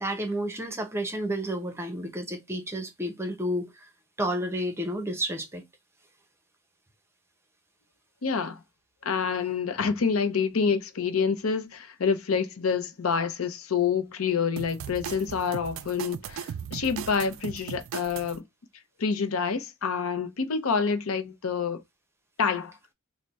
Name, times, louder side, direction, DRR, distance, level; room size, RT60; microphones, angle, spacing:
voice 1, 0.0-3.9 4.2-5.6, equal, 10° right, 0.7 m, -31 dB
voice 2, 8.2-8.6 9.0-18.4 19.0-21.8 22.4-22.7, left 5 dB, 85° left, 0.6 m, -27 dB
sound 1, 14.6-18.4, right 8 dB, 70° right, 0.3 m, -38 dB
3.4 x 2.1 x 3.9 m
head